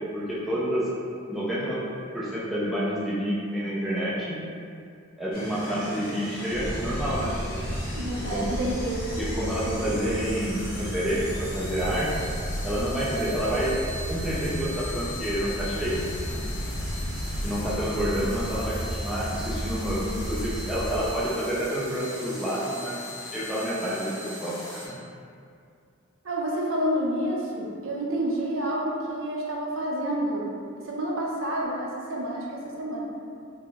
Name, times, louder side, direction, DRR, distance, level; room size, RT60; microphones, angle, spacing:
voice 1, 0.1-0.9 1.3-1.8 2.1-4.4 5.2-7.3 8.2-8.5 9.2-12.2 12.6-13.7 14.1-16.0 17.4-23.0 23.3-25.0, equal, ahead, -9 dB, 0.3 m, -29 dB
sound 1, 5.3-24.9, left 1 dB, 40° left, 0.8 m, -39 dB
sound 2, 6.5-21.1, equal, 90° left, 0.6 m, -33 dB
voice 2, 8.0-9.0 9.7-10.1 26.2-30.6 30.8-33.0, right 1 dB, 70° right, -3 dB, 0.5 m, -29 dB
2.8 x 2.0 x 3.4 m, 2.3 s
head